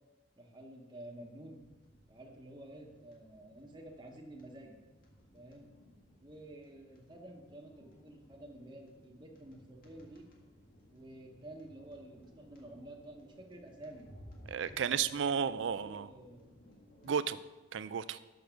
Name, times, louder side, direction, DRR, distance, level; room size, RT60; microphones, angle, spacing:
voice 1, 0.4-1.6 2.1-4.8 5.3-5.7 6.2-10.3 10.9-14.1 14.8-16.6, right 1 dB, 25° right, -1 dB, 1.0 m, -51 dB
sound 1, 1.5-17.1, equal, 50° left, 1.6 m, -60 dB
voice 2, 14.5-16.1 17.0-17.4 17.7-18.2, right 7 dB, 75° right, 14 dB, 0.4 m, -33 dB
6.8 x 6.3 x 6.0 m, 1.1 s
head